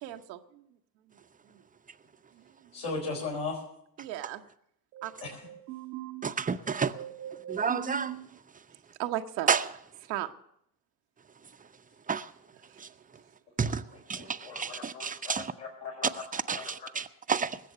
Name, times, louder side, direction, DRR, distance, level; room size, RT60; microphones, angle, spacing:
voice 1, 0.0-0.6 4.0-4.4 4.9-6.4 6.9-8.4 9.0-9.5 10.1-10.3, right 13 dB, 85° right, 0.9 m, -37 dB
voice 2, 2.7-3.6 5.2-5.4 14.1-16.2 16.5-17.0, left 4 dB, 60° left, 4.6 m, -38 dB
voice 3, 6.2-6.9 7.5-8.2 9.5-9.6 12.1-12.3 12.8-12.9 13.6-13.8 14.1-15.5 16.3-17.6, right 6 dB, 15° right, 0.7 m, -30 dB
20.0 x 7.8 x 6.6 m
hypercardioid pair, 60°, 50 cm